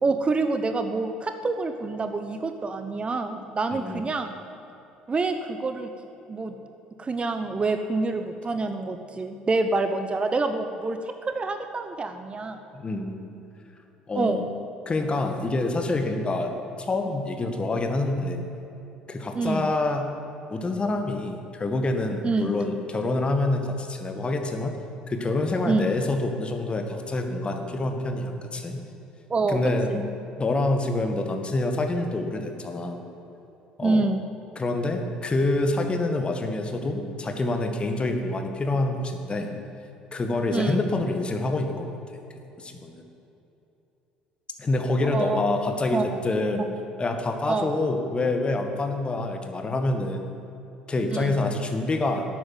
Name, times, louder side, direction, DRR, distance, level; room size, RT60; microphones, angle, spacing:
voice 1, 0.0-4.3 5.1-5.9 6.3-6.6 7.0-12.6 14.1-14.4 19.3-19.7 22.2-22.5 25.6-25.9 29.3-29.6 29.9-30.0 33.8-34.3 40.5-40.8 45.0-45.4 45.9-46.0 47.5-47.7 51.1-51.4, right 3 dB, 30° right, 8 dB, 0.9 m, -27 dB
voice 2, 3.7-4.0 12.7-13.2 14.1-14.5 14.9-16.5 16.8-18.4 19.1-20.1 20.5-24.8 25.1-28.8 29.5-30.0 30.4-33.0 33.8-34.0 34.6-39.5 40.1-41.9 42.6-43.0 44.6-46.7 47.0-50.2 50.9-52.2, left 2 dB, 25° left, 4 dB, 1.8 m, -26 dB
12.5 x 8.8 x 9.3 m, 2.9 s
figure-of-eight pair, 55°, 4 cm